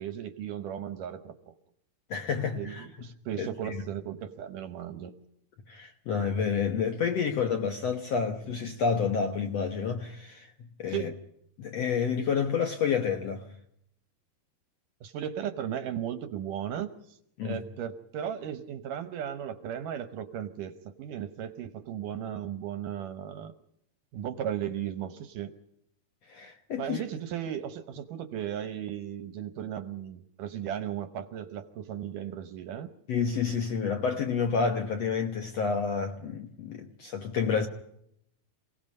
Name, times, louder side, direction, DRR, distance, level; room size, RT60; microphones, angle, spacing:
voice 1, 0.0-1.5 2.6-5.2 10.9-11.2 15.0-17.2 17.4-23.5 24.1-25.5 26.8-32.9, right 9 dB, 70° right, 2.2 m, -36 dB
voice 2, 2.1-2.9 3.4-3.8 5.7-11.1 11.6-13.5 17.4-17.6 26.3-27.0 33.1-37.7, left 6 dB, 65° left, 1.7 m, -29 dB
27.5 x 17.5 x 5.4 m
omnidirectional pair, 4.4 m